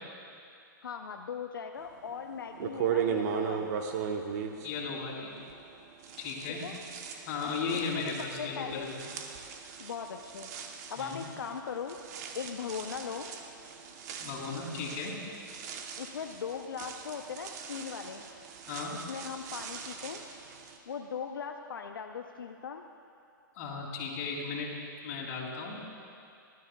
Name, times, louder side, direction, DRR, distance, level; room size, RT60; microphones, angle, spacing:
voice 1, 0.8-3.8 6.6-6.8 7.7-9.0 9.8-10.5 10.9-12.0 12.3-13.3 16.0-18.3 18.9-20.2 20.9-22.8, left 6 dB, 90° left, 4 dB, 0.5 m, -39 dB
sound 1, 2.0-2.1 2.6-5.7 6.0-20.8, right 7 dB, 50° right, 0.9 m, -38 dB
voice 2, 4.6-5.3 6.2-6.6 7.3-8.9 11.0-11.2 14.2-15.2 18.7-19.0 23.6-24.7 25.0-25.8, left 4 dB, 45° left, -3 dB, 2.6 m, -36 dB
18.0 x 12.5 x 2.2 m, 2.5 s
hypercardioid pair, 135°, 11 cm